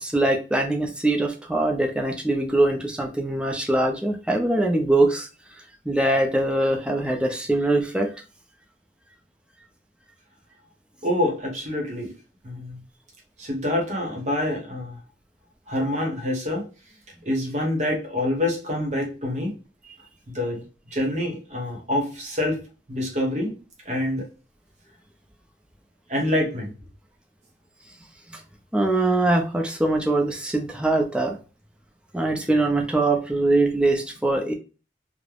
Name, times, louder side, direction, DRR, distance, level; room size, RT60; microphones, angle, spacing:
voice 1, 0.0-5.3 5.9-8.1 28.3-28.4 28.7-31.4 32.1-34.5, right 2 dB, 5° right, 2 dB, 0.4 m, -22 dB
voice 2, 11.0-12.1 12.4-12.8 13.4-15.0 15.7-16.6 17.2-19.5 20.3-20.6 20.9-22.6 22.9-23.5 23.9-24.3 26.1-26.7, left 1 dB, 40° right, 0 dB, 0.8 m, -26 dB
3.2 x 2.0 x 2.3 m, 0.34 s
head